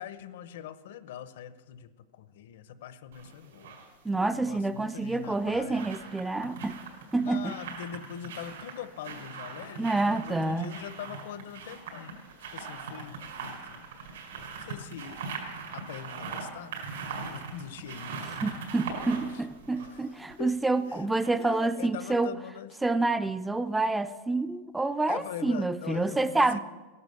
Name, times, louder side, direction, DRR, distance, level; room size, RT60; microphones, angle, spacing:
voice 1, 0.0-3.7 4.3-6.0 7.2-12.2 12.5-13.9 14.6-15.2 15.7-16.8 17.3-18.4 19.8-20.5 20.9-22.8 25.1-26.6, left 10 dB, 75° left, 13 dB, 0.9 m, -42 dB
sound 1, 3.1-3.9 5.1-20.6 20.9-21.0, right 5 dB, 90° right, 5.0 m, -41 dB
voice 2, 4.0-6.8 7.1-7.5 9.8-10.7 18.4-22.3 22.8-26.6, right 2 dB, 5° right, 12 dB, 0.4 m, -28 dB
15.0 x 11.0 x 7.0 m, 1.3 s
supercardioid pair, 165°, 0 cm